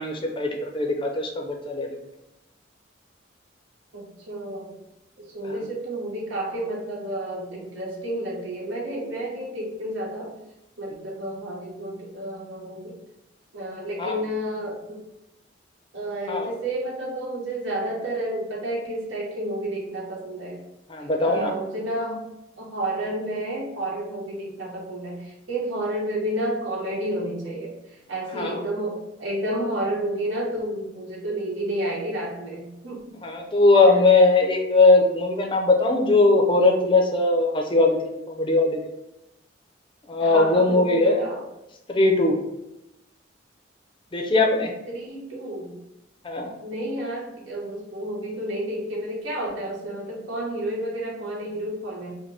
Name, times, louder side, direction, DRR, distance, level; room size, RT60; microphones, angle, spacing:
voice 1, 0.0-1.9 14.0-14.1 16.3-16.5 20.9-21.5 28.3-28.6 33.2-38.8 40.1-41.3 41.9-42.4 44.1-44.7 46.2-46.5, left 2 dB, 25° left, 2 dB, 0.5 m, -20 dB
voice 2, 3.9-4.8 5.2-10.3 10.8-13.0 13.5-15.0 15.9-20.6 21.2-22.3 22.6-33.2 40.2-41.4 44.9-45.8 46.6-52.2, right 1 dB, 85° right, -4 dB, 1.3 m, -31 dB
4.9 x 2.1 x 3.3 m, 0.91 s
head